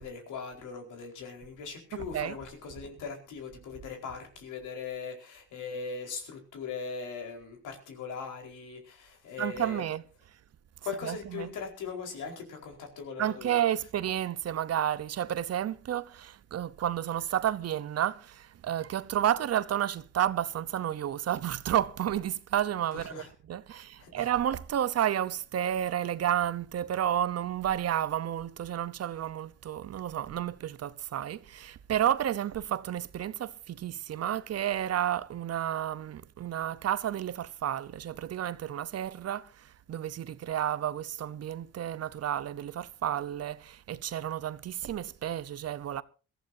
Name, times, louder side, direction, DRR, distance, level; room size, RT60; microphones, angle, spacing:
voice 1, 0.0-9.8 10.8-13.6 22.9-23.3 23.7-24.3, left 5 dB, 85° left, 4.6 m, -40 dB
voice 2, 9.4-10.0 11.0-11.5 13.2-46.0, right 10 dB, 55° right, 0.9 m, -31 dB
22.5 x 14.5 x 2.7 m
cardioid pair, 90°, 30 cm